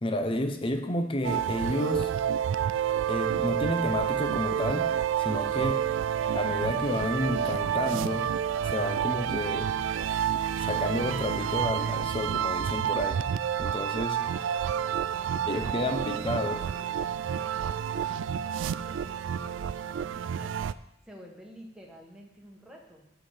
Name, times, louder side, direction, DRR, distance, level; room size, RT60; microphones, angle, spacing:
voice 1, 0.0-2.1 3.1-4.9 5.2-5.9 6.3-8.3 8.7-9.8 10.6-13.2 13.6-14.2 15.5-16.6, left 1 dB, 30° left, 7 dB, 0.8 m, -30 dB
sound 1, 1.2-20.7, right 9 dB, 85° right, 0.3 m, -29 dB
voice 2, 14.2-17.0 17.4-20.7 21.0-23.1, equal, 5° right, -2 dB, 1.5 m, -51 dB
8.6 x 5.8 x 5.7 m, 0.83 s
head